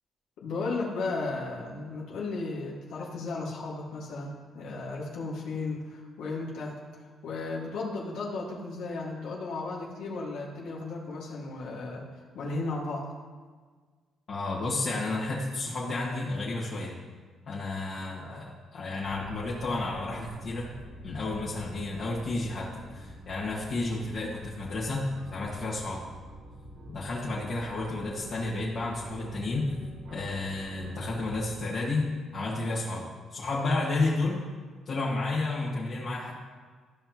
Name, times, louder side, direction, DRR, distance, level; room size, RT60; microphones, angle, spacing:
voice 1, 0.4-6.8 7.2-12.0 12.3-13.1, left 3 dB, 85° left, -4 dB, 1.9 m, -35 dB
voice 2, 14.3-16.9 17.5-20.7 21.0-26.0 26.9-29.7 30.1-32.1 32.3-34.4 34.8-36.3, left 2 dB, 60° left, -8 dB, 1.7 m, -31 dB
sound 1, 19.0-31.7, equal, 75° right, 2.0 m, -46 dB
14.0 x 5.6 x 3.0 m, 1.5 s
cardioid pair, 90°, 0 cm